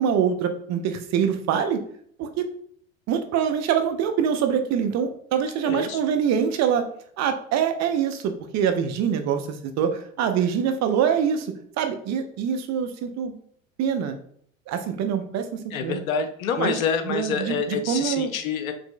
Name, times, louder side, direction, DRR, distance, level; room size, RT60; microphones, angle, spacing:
voice 1, 0.0-1.8 2.2-2.5 3.1-6.9 7.2-11.5 11.8-13.3 13.8-14.2 14.7-16.0 16.6-16.8 17.1-18.3, right 8 dB, 40° right, 7 dB, 0.6 m, -24 dB
voice 2, 5.6-6.0 15.7-18.7, left 6 dB, 85° left, 8 dB, 0.7 m, -27 dB
5.1 x 3.1 x 2.2 m, 0.63 s
hypercardioid pair, 85°, 41 cm